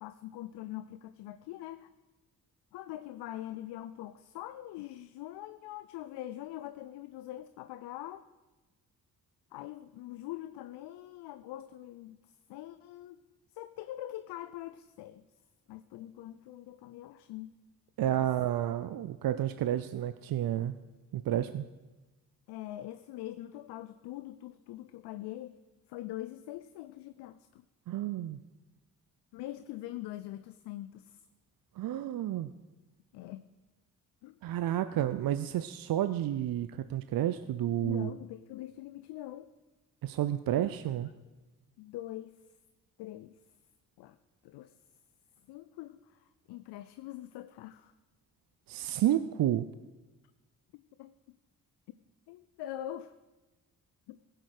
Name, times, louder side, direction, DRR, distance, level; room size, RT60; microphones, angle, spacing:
voice 1, 0.0-1.9 2.7-8.3 9.5-12.2 12.5-13.2 13.5-15.2 15.7-17.6 18.2-18.3 22.5-25.6 25.9-27.6 29.3-31.2 33.1-33.5 34.2-34.4 37.8-39.5 40.5-40.7 41.8-42.4 43.0-43.4 44.0-44.2 44.4-44.7 45.5-47.9 50.7-51.4 52.3-53.1 54.1-54.2, left 14 dB, 75° left, 13 dB, 0.5 m, -43 dB
voice 2, 18.0-20.7 21.1-21.7 27.9-28.4 31.8-32.5 34.4-38.1 40.0-41.1 48.7-49.7, right 12 dB, 60° right, 12 dB, 0.6 m, -30 dB
16.0 x 7.9 x 4.9 m, 1.1 s
hypercardioid pair, 45°, 40 cm